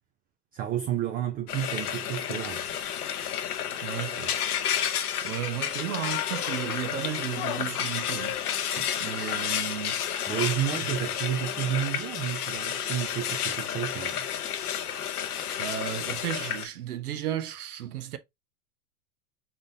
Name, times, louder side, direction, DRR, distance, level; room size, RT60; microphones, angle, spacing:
voice 1, 0.5-2.7 8.8-8.9 10.3-14.3, right 10 dB, 20° right, 0.4 m, -31 dB
Frying (food), 1.5-16.7, left 9 dB, 85° left, 0.8 m, -31 dB
voice 2, 3.8-4.4 5.2-8.7 9.0-10.3 10.8-10.9 14.8-18.2, right 10 dB, 80° right, 0.8 m, -35 dB
Human voice, 5.8-6.9 7.3-9.7 10.0-10.7 11.2-12.0, left 14 dB, 45° left, 0.5 m, -41 dB
4.1 x 3.5 x 2.6 m
hypercardioid pair, 100°, 44 cm